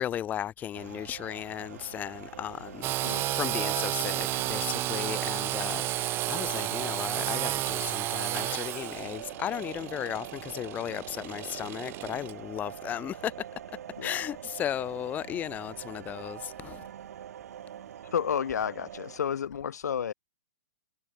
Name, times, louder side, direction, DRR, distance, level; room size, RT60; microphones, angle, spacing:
voice 1, 0.0-13.3 14.0-16.9, left 10 dB, 20° left, 1.4 m, -35 dB
sound 1, 0.7-19.2, right 10 dB, 65° right, 4.1 m, -44 dB
Engine / Sawing, 2.8-12.3, right 16 dB, 25° right, 2.2 m, -32 dB
voice 2, 18.1-20.1, left 8 dB, 75° left, 4.8 m, -31 dB
hypercardioid pair, 140°, 9 cm